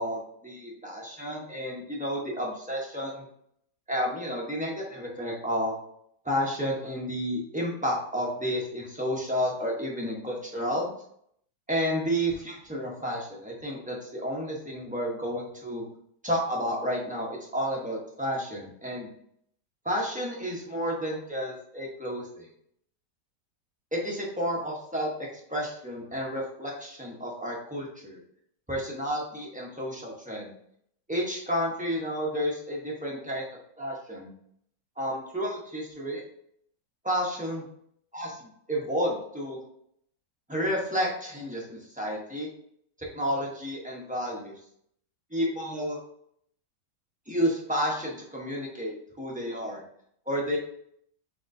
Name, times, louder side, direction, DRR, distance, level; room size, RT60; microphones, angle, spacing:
voice 1, 0.0-3.2 3.9-5.7 6.2-10.9 11.7-15.8 16.2-19.1 19.8-22.5 23.9-28.2 28.7-30.5 31.1-33.4 33.8-34.3 35.0-36.2 37.0-37.6 38.1-39.6 40.5-42.5 43.0-44.5 45.3-46.0 47.3-49.8 50.3-50.6, equal, 10° right, -3 dB, 0.5 m, -31 dB
6.3 x 2.9 x 2.6 m, 0.68 s
omnidirectional pair, 1.8 m